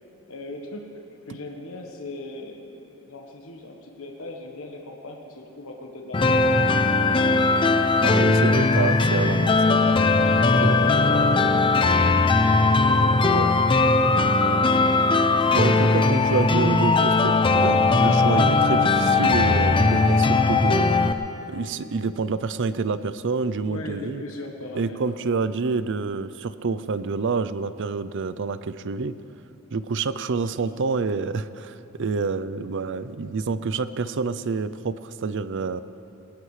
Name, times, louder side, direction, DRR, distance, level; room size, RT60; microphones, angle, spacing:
voice 1, 0.3-7.4 9.2-9.4 10.4-12.6 12.9-13.7 13.9-14.6 23.6-25.0, left 2 dB, 70° left, 2 dB, 1.3 m, -39 dB
sound 1, 6.1-21.1, left 3 dB, 25° left, 0.5 m, -19 dB
voice 2, 8.0-10.0 10.6-10.9 13.3-13.5 15.5-20.9 21.5-24.2 24.7-29.2 29.7-35.8, right 4 dB, 60° right, 14 dB, 0.5 m, -27 dB
19.5 x 18.5 x 3.3 m, 2.8 s
head